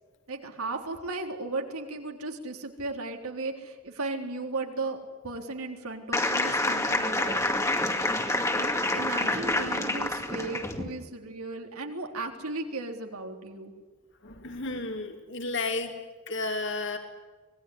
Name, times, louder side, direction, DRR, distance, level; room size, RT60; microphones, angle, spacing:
voice 1, 0.3-7.7 8.5-13.7, right 3 dB, 80° right, 3 dB, 3.7 m, -36 dB
sound 1, 6.1-10.8, left 2 dB, 15° left, 2.1 m, -27 dB
voice 2, 14.2-16.0 16.3-17.0, left 3 dB, 55° left, 4 dB, 3.1 m, -32 dB
25.5 x 20.0 x 9.9 m, 1.3 s
head